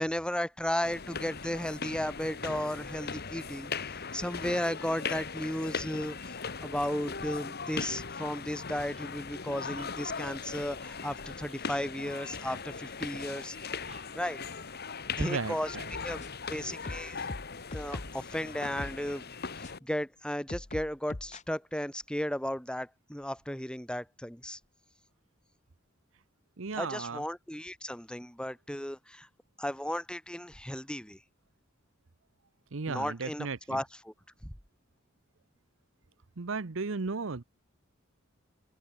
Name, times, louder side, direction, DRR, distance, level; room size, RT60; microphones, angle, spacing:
voice 1, 0.0-13.6 14.1-14.4 15.2-15.8 16.0-16.2 16.5-17.2 17.7-19.3 19.6-24.6 26.7-29.3 29.6-31.2 32.9-34.1 34.4-34.5, equal, 5° left, 3.7 m, -35 dB
sound 1, 0.8-19.8, left 5 dB, 50° left, 2.0 m, -39 dB
voice 2, 15.2-15.8 26.6-27.2 32.7-33.8 36.4-37.4, right 4 dB, 70° right, 0.8 m, -35 dB
sound 2, 15.9-16.5 16.8-18.2 18.8-19.0 19.6-19.7 20.5-21.4, left 2 dB, 35° left, 1.0 m, -42 dB
open air
head